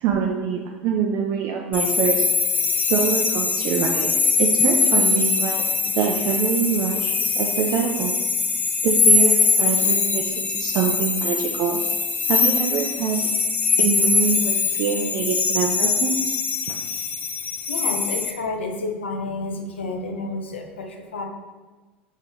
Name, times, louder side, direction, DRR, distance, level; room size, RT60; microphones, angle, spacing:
voice 1, 0.0-2.3 2.9-4.1 4.4-5.6 5.9-8.1 8.8-11.8 12.3-13.2 13.8-16.1 16.7-16.8, right 7 dB, 55° right, 1 dB, 0.5 m, -24 dB
sound 1, 1.7-18.3, left 4 dB, 30° left, 0.5 m, -22 dB
voice 2, 17.7-21.2, left 2 dB, 90° left, 3 dB, 0.6 m, -30 dB
5.1 x 2.7 x 3.7 m, 1.3 s
hypercardioid pair, 85°, 6 cm